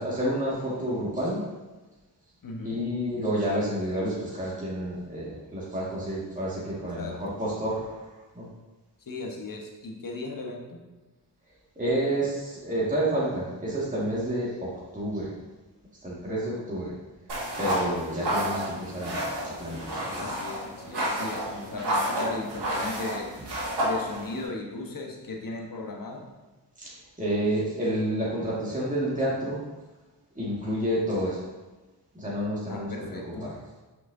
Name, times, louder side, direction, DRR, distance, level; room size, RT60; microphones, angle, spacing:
voice 1, 0.0-1.4 2.6-8.5 11.8-15.3 16.0-16.9 17.6-20.3 26.8-29.6 30.4-31.5 32.1-32.9 33.2-33.5, right 1 dB, 20° right, -7 dB, 2.0 m, -29 dB
voice 2, 2.4-2.8 7.0-7.4 9.0-10.8 18.2-18.3 20.2-23.3 23.8-26.2 32.7-33.5, left 3 dB, 55° left, 0 dB, 1.2 m, -37 dB
sound 1, 17.3-24.5, equal, 75° right, 1.9 m, -30 dB
6.0 x 5.9 x 2.7 m, 1.2 s
cardioid pair, 55°, 41 cm